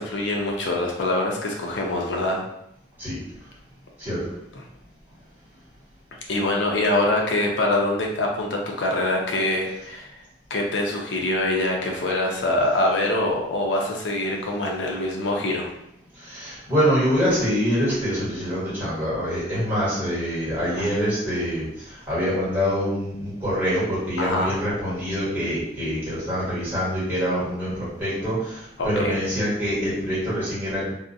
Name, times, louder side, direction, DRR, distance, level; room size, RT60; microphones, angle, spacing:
voice 1, 0.0-2.4 6.3-10.1 10.5-15.7 20.7-20.9 24.2-24.5 28.8-29.2, left 1 dB, 75° left, 0 dB, 0.5 m, -24 dB
voice 2, 16.2-21.6 22.1-28.3 28.8-30.9, equal, 10° right, -10 dB, 1.2 m, -25 dB
2.4 x 2.0 x 2.6 m, 0.79 s
head